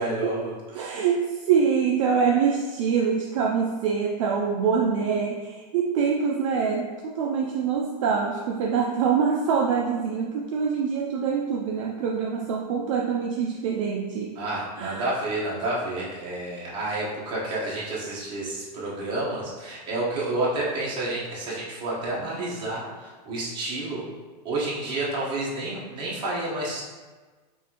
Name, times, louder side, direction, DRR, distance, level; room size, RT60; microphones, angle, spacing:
voice 1, 0.0-1.0 14.3-24.0 24.4-26.8, right 2 dB, 25° right, -6 dB, 1.0 m, -30 dB
voice 2, 0.8-14.3 14.8-15.0, right 6 dB, 50° right, 0 dB, 0.4 m, -25 dB
5.4 x 2.5 x 2.9 m, 1.3 s
supercardioid pair, 170°, 21 cm